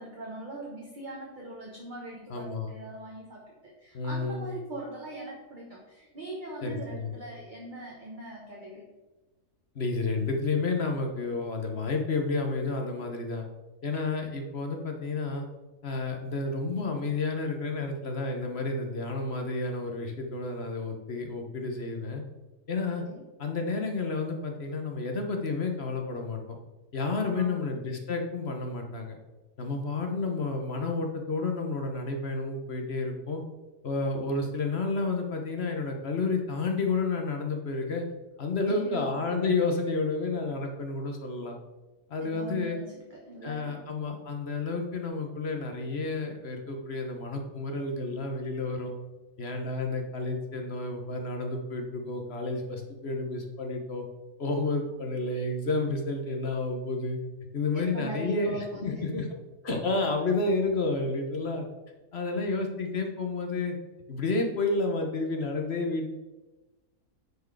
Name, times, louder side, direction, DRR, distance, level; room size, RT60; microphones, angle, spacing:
voice 1, 0.0-8.8 23.0-23.2 27.2-27.5 38.7-39.1 42.2-43.7 57.7-59.0, right 1 dB, 30° right, -2 dB, 1.3 m, -40 dB
voice 2, 2.3-2.7 3.9-4.5 6.6-7.1 9.7-13.4 13.8-15.5 15.8-22.2 22.7-23.0 23.4-26.6 26.9-29.2 29.6-33.4 33.8-38.1 38.4-41.6 42.1-42.8 43.4-48.9 49.4-54.0 54.4-57.2 57.5-59.3 59.6-61.7 62.1-63.8 64.1-66.1, left 3 dB, 45° left, 3 dB, 1.1 m, -30 dB
9.6 x 4.5 x 4.7 m, 1.1 s
omnidirectional pair, 1.7 m